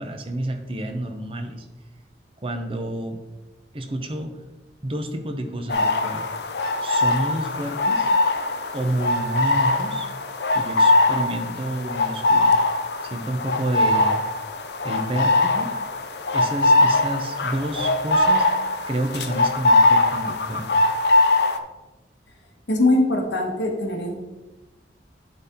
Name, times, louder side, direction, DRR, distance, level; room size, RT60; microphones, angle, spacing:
voice 1, 0.0-1.7 2.4-3.2 3.7-4.3 4.8-6.3 6.8-8.1 8.7-10.1 10.5-12.6 13.0-14.2 14.8-15.7 16.3-18.5 18.9-20.7, right 1 dB, 30° right, 5 dB, 0.7 m, -29 dB
sound 1, 5.7-21.6, left 2 dB, 70° left, 0.6 m, -21 dB
voice 2, 22.7-24.2, left 2 dB, 90° left, 2 dB, 1.4 m, -21 dB
10.5 x 4.3 x 3.7 m, 1.1 s
head